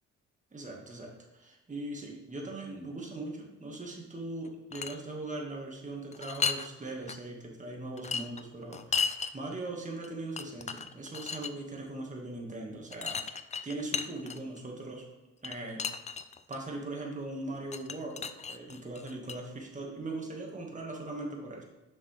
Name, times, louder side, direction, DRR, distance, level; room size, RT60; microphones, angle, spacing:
voice 1, 0.5-13.2 13.6-15.1 15.4-15.8 16.5-21.6, right 2 dB, 25° right, 0 dB, 1.9 m, -40 dB
sound 1, 4.5-5.0 6.1-6.7 7.1-7.2 8.0-9.3 10.0-10.1 10.4-11.5 12.9-14.6 15.4-16.6 17.7-19.4, left 5 dB, 25° left, 0.4 m, -34 dB
7.3 x 6.3 x 3.4 m, 1.1 s
cardioid pair, 90°, 30 cm